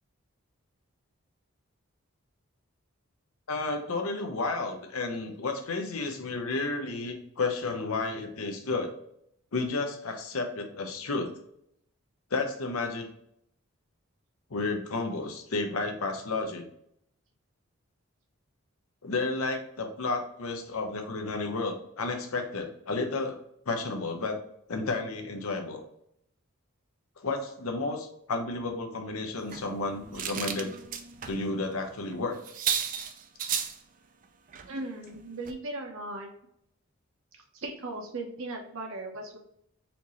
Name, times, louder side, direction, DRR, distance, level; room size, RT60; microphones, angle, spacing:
voice 1, 3.5-8.9 9.5-11.3 12.3-13.1 14.5-16.7 19.0-23.4 23.7-24.4 24.7-25.8 27.2-30.7 31.3-32.4, left 3 dB, 80° left, 4 dB, 0.7 m, -32 dB
sound 1, 29.5-31.4 31.7-31.9 32.1-32.2 32.4-33.8 34.5-34.7 35.1-35.2 35.5-35.6, right 8 dB, 35° right, 0.3 m, -33 dB
voice 2, 34.6-36.3 37.5-39.4, right 2 dB, 70° right, 1 dB, 0.9 m, -37 dB
4.3 x 2.7 x 3.0 m, 0.73 s
head